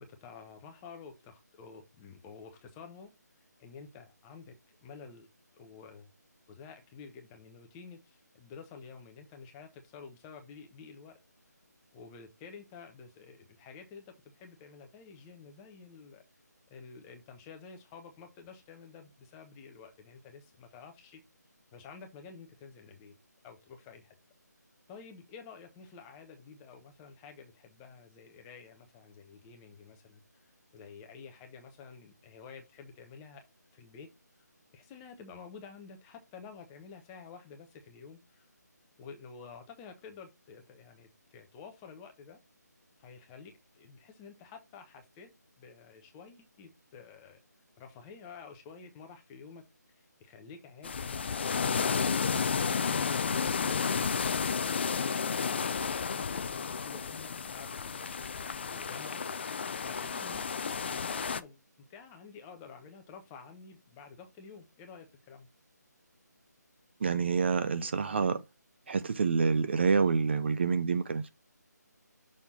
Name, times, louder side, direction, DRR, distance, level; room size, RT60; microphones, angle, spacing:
voice 1, 0.0-3.1 3.6-4.5 4.8-5.3 5.6-6.1 6.5-11.2 11.9-16.2 16.7-21.2 21.7-23.1 23.4-24.1 24.9-33.4 33.7-34.5 34.7-38.5 39.0-42.4 43.0-45.3 45.6-47.4 47.8-49.6 49.9-54.2 54.5-59.5 59.8-61.6 61.9-65.5, left 5 dB, 15° left, 0.9 m, -50 dB
sound 1, 50.8-61.4, left 6 dB, 35° left, 0.4 m, -32 dB
voice 2, 67.0-68.4 68.9-71.3, right 5 dB, 40° right, 0.5 m, -27 dB
6.4 x 3.5 x 5.6 m
figure-of-eight pair, 160°, 10 cm